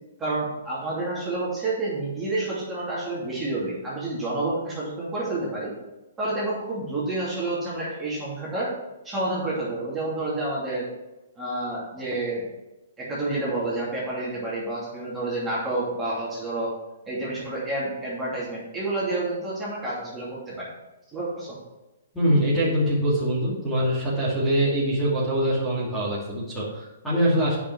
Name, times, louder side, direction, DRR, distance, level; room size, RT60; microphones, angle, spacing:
voice 1, 0.2-5.7 6.2-8.7 9.0-10.9 11.4-12.4 13.0-16.7 17.1-20.7 21.1-21.6, right 2 dB, 10° right, -8 dB, 2.7 m, -29 dB
voice 2, 22.1-27.6, equal, 5° left, -9 dB, 2.6 m, -23 dB
8.5 x 5.6 x 4.7 m, 1.0 s
hypercardioid pair, 150°, 0 cm